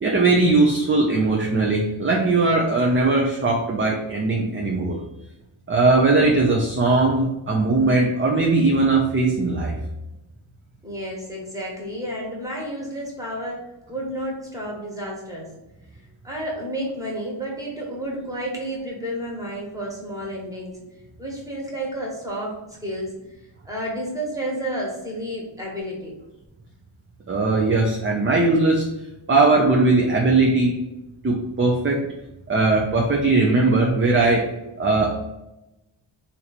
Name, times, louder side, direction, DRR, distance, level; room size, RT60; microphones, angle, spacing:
voice 1, 0.0-5.0 5.7-9.7 27.3-28.8 29.3-30.7 31.2-32.0 32.5-34.5 34.8-35.3, right 3 dB, 25° right, -1 dB, 0.5 m, -19 dB
voice 2, 10.8-15.5 16.2-20.8 21.2-23.1 23.6-26.1, right 1 dB, 5° right, -3 dB, 1.3 m, -31 dB
3.0 x 2.7 x 4.1 m, 0.96 s
wide cardioid pair, 95°, 50 cm